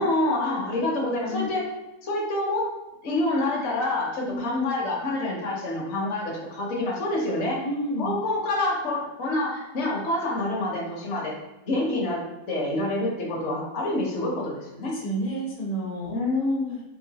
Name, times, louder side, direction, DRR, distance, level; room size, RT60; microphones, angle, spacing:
voice 1, 0.0-1.7 2.0-2.7 3.0-7.6 8.0-11.3 11.7-15.0 16.1-16.8, left 2 dB, 55° left, -3 dB, 1.0 m, -27 dB
voice 2, 7.5-8.2 14.9-16.1, right 1 dB, 70° left, -3 dB, 1.3 m, -30 dB
3.8 x 2.5 x 2.8 m, 1.0 s
omnidirectional pair, 1.6 m